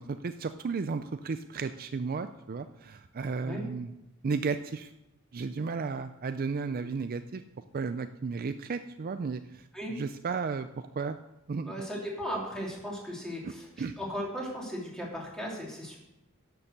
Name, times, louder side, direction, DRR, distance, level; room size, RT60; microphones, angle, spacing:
voice 1, 0.0-3.9 4.2-4.9 5.3-7.4 7.7-11.2 11.5-11.7 13.4-13.5 13.8-13.9, right 4 dB, 45° right, 10 dB, 0.4 m, -34 dB
voice 2, 11.6-13.7 14.0-16.0, equal, 5° left, -3 dB, 3.0 m, -36 dB
11.5 x 7.0 x 6.6 m, 0.91 s
head